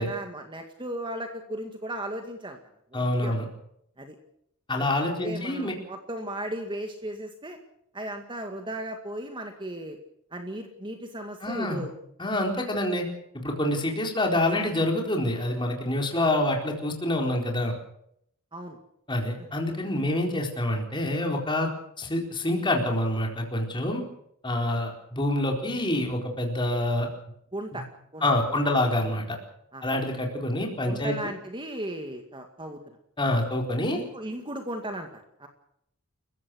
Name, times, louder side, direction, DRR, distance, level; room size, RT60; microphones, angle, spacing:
voice 1, 0.0-2.6 2.9-3.4 4.0-4.2 4.8-7.6 7.9-10.0 10.3-11.9 18.5-18.8 20.1-20.2 24.7-24.8 27.5-27.9 28.1-28.9 29.7-29.8 30.8-32.8 33.2-33.3 33.9-35.5, right 1 dB, 20° right, 5 dB, 2.0 m, -36 dB
voice 2, 2.9-3.5 4.7-5.7 11.4-11.8 12.2-13.0 13.3-17.7 19.1-21.7 22.0-24.0 24.4-27.1 27.7-27.8 28.2-29.4 29.8-31.2 33.2-34.0, left 1 dB, 20° left, 2 dB, 4.3 m, -26 dB
30.0 x 15.5 x 6.4 m, 0.73 s
head